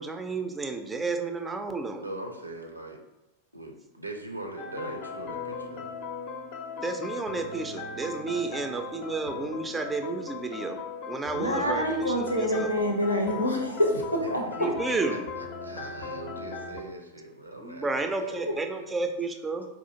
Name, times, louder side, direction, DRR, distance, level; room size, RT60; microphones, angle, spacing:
voice 1, 0.0-2.0 6.8-10.8 11.1-12.7 14.6-15.2 17.6-19.7, right 3 dB, 10° right, 6 dB, 0.4 m, -31 dB
voice 2, 2.0-3.0 3.5-5.8 8.5-8.7 14.2-14.8 15.1-18.9, right 1 dB, 85° right, 3 dB, 0.5 m, -41 dB
sound 1, 4.6-16.8, left 4 dB, 45° left, 0.5 m, -38 dB
voice 3, 11.3-14.7, equal, 85° left, 1 dB, 0.6 m, -26 dB
4.1 x 2.4 x 2.7 m, 0.97 s
figure-of-eight pair, 90°, 0 cm